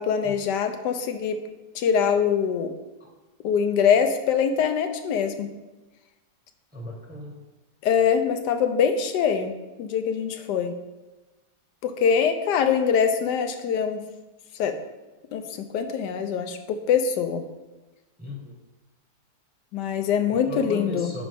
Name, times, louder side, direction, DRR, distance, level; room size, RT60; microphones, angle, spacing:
voice 1, 0.0-1.4 1.7-2.7 3.4-5.5 7.8-9.5 9.8-10.7 11.8-14.0 14.5-14.7 15.3-17.4 19.7-21.1, left 7 dB, 85° left, 7 dB, 1.3 m, -23 dB
voice 2, 6.7-7.4 18.2-18.6 20.3-21.2, left 1 dB, 10° right, 0 dB, 0.8 m, -37 dB
8.7 x 5.0 x 3.5 m, 1.1 s
omnidirectional pair, 1.8 m